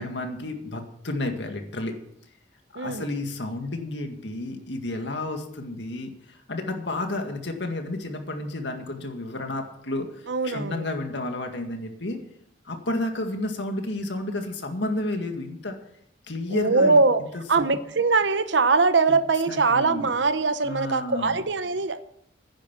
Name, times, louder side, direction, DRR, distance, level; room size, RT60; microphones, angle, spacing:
voice 1, 0.0-2.0 2.7-12.2 12.6-15.8 16.3-17.0 17.3-17.8 19.1-19.2 19.5-20.1 20.6-21.4, left 2 dB, 75° left, 4 dB, 2.0 m, -31 dB
voice 2, 10.3-10.8 16.5-17.2 17.5-22.0, right 4 dB, 80° right, 12 dB, 0.9 m, -22 dB
10.5 x 9.6 x 7.2 m, 0.72 s
head